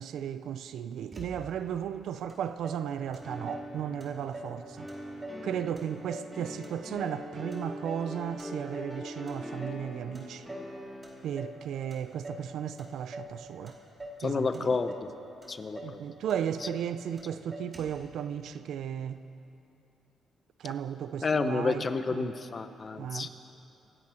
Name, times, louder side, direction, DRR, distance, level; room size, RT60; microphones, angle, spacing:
voice 1, 0.0-4.9 5.4-10.5 11.2-13.8 14.2-14.8 15.8-19.2 20.6-22.3 23.0-23.3, right 9 dB, 75° right, 0.5 m, -35 dB
Motor vehicle (road), 1.1-1.8 2.3-2.4 2.6-3.7 4.0-4.6 4.9-5.5 5.8-7.2 7.5-8.1 8.4-9.0 9.3-9.9 10.1-10.7 11.0-11.6 11.9-12.5 12.8-13.4 13.7-14.2 14.5-15.1 15.4-15.5 15.7-16.0 16.3-16.9 17.2-17.3 17.5-18.1, equal, 30° right, 2.7 m, -44 dB
sound 1, 3.2-11.5, equal, 10° right, 2.8 m, -43 dB
voice 2, 14.2-15.1 15.5-16.0 21.2-23.3, left 4 dB, 40° left, 0.8 m, -30 dB
25.0 x 10.0 x 4.4 m
cardioid pair, 85°, 0 cm